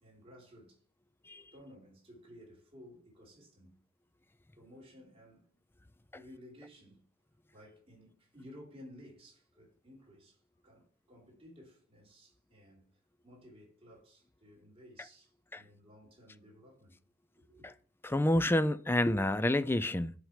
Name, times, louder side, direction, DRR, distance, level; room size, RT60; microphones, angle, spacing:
voice 1, 0.0-0.8 1.5-3.8 4.6-5.6 6.1-7.0 7.5-12.9 13.2-16.9 17.4-17.7, equal, 30° right, 3.1 m, -56 dB
voice 2, 18.0-20.1, left 1 dB, 10° left, 0.3 m, -28 dB
6.2 x 5.4 x 4.9 m
head